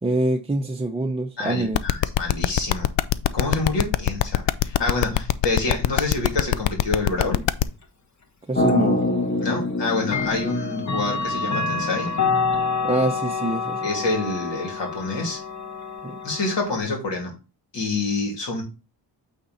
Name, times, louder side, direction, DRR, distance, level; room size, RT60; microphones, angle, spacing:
voice 1, 0.0-1.8 8.5-9.1 12.8-13.8 16.0-16.2, right 2 dB, 15° right, 0.5 m, -25 dB
voice 2, 1.4-2.9 3.3-7.4 9.4-12.1 13.8-15.4 16.2-17.3 17.7-18.6, left 3 dB, 70° left, 3.0 m, -27 dB
sound 1, 1.7-7.6, left 14 dB, 90° left, 0.5 m, -21 dB
sound 2, 8.5-12.7, left 2 dB, 20° left, 1.5 m, -26 dB
Clock, 8.7-8.8 10.0-16.8, left 4 dB, 40° left, 1.4 m, -27 dB
8.6 x 3.8 x 4.1 m
cardioid pair, 90°, 44 cm